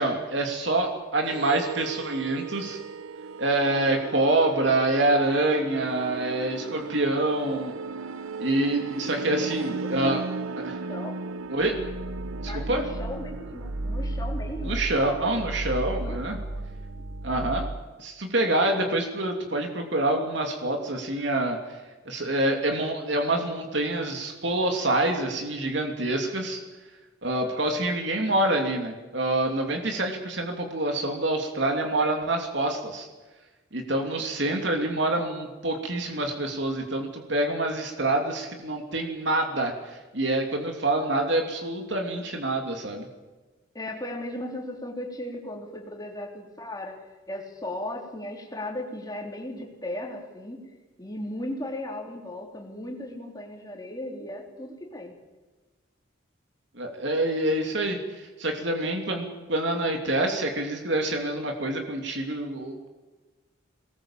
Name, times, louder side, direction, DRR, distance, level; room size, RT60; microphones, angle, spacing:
voice 1, 0.0-2.8 3.4-7.7 8.4-10.2 10.6-10.8 11.5-11.8 12.4-12.8 14.6-16.4 17.2-17.7 18.0-21.6 22.0-26.6 27.2-33.1 33.7-43.1 56.7-62.9, right 2 dB, 60° right, 3 dB, 2.9 m, -26 dB
sound 1, 1.2-17.8, right 3 dB, 90° right, 0.8 m, -35 dB
voice 2, 9.3-10.4 10.9-11.2 12.4-15.4 16.0-16.2 16.6-16.7 17.0-17.1 43.7-50.6 51.0-55.2, left 1 dB, 20° left, 0 dB, 3.6 m, -37 dB
22.5 x 20.0 x 7.4 m, 1.2 s
head